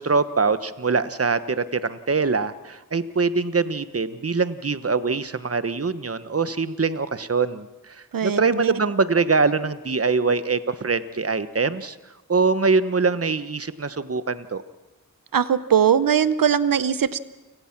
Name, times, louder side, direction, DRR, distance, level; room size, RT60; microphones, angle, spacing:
voice 1, 0.0-12.0 12.3-14.6, right 4 dB, 45° right, 13 dB, 1.1 m, -23 dB
voice 2, 8.1-8.7 15.3-17.2, right 8 dB, 85° right, 15 dB, 0.8 m, -20 dB
29.5 x 17.5 x 6.0 m, 1.1 s
wide cardioid pair, 55°, 33 cm